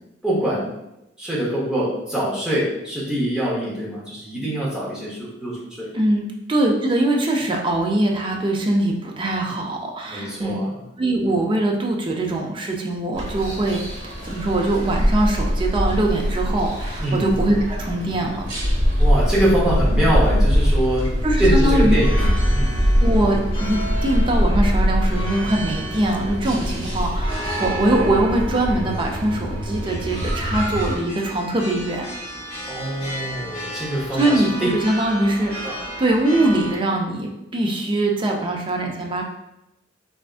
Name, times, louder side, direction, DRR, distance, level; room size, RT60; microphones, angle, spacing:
voice 1, 0.2-0.7 1.2-5.9 10.1-10.7 17.0-17.3 19.0-21.1 21.4-22.8 32.7-34.7 35.6-35.8, right 1 dB, 5° right, -7 dB, 0.8 m, -24 dB
voice 2, 5.9-10.5 11.0-18.4 21.2-22.0 23.0-32.1 34.1-35.5 36.0-39.2, right 1 dB, 25° right, 0 dB, 0.4 m, -22 dB
sound 1, 13.1-31.0, equal, 80° right, 1.2 m, -22 dB
sound 2, 21.6-36.7, right 1 dB, 25° left, 1.0 m, -34 dB
3.4 x 2.4 x 2.4 m, 0.88 s
head